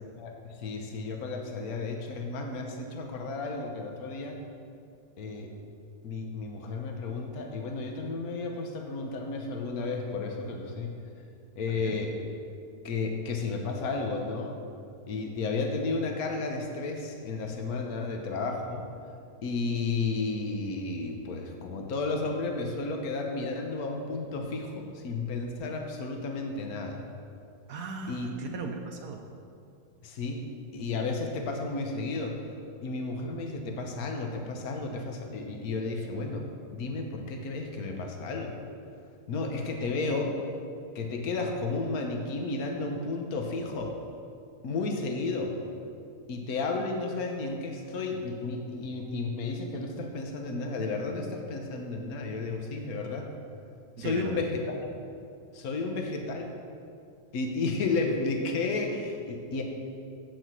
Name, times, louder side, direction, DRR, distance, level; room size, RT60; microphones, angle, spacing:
voice 1, 0.2-4.4 5.2-5.5 6.0-10.9 11.6-12.2 12.8-14.5 15.1-18.8 19.4-27.0 28.1-28.3 30.0-30.4 30.7-32.4 32.8-36.4 36.7-38.5 39.3-40.3 40.9-43.9 44.6-45.5 46.3-53.3 54.0-54.8 55.5-56.5 57.3-59.6, left 3 dB, 75° left, 3 dB, 1.5 m, -32 dB
voice 2, 27.7-29.2 54.0-54.4, right 4 dB, 90° right, 2 dB, 1.4 m, -38 dB
7.9 x 6.9 x 7.6 m, 2.4 s
omnidirectional pair, 1.6 m